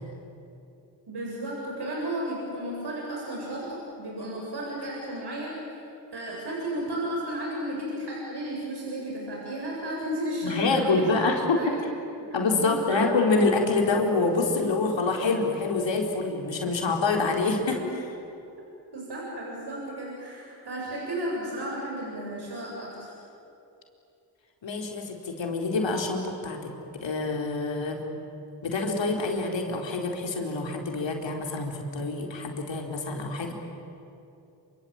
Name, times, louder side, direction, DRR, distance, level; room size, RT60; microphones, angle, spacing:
voice 1, 1.1-5.8 6.1-11.2 11.6-11.7 12.6-13.1 17.4-17.8 18.9-23.1, right 1 dB, 55° right, -3 dB, 7.8 m, -33 dB
voice 2, 10.4-11.8 12.3-17.8 24.6-26.7 27.0-28.0 28.6-33.5, left 3 dB, 65° left, 2 dB, 4.4 m, -26 dB
27.0 x 24.5 x 8.9 m, 2.7 s
supercardioid pair, 40°, 47 cm